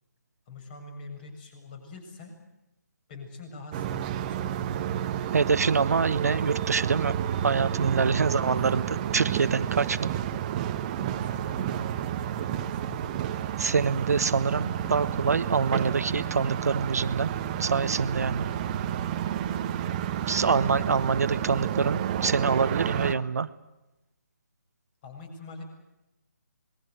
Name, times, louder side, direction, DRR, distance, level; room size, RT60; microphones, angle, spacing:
voice 1, 0.5-2.4 3.1-4.7 8.2-8.8 9.9-10.0 10.9-13.1 13.5-13.6 20.3-20.6 25.0-25.6, left 3 dB, 30° left, 5 dB, 7.2 m, -45 dB
sound 1, 3.7-23.1, right 10 dB, 25° right, 1.2 m, -30 dB
voice 2, 5.3-7.1 7.4-8.8 9.1-10.0 13.6-17.3 17.6-18.5 20.3-23.5, right 5 dB, 60° right, 12 dB, 1.2 m, -25 dB
26.0 x 21.5 x 8.0 m, 0.96 s
figure-of-eight pair, 150°, 9 cm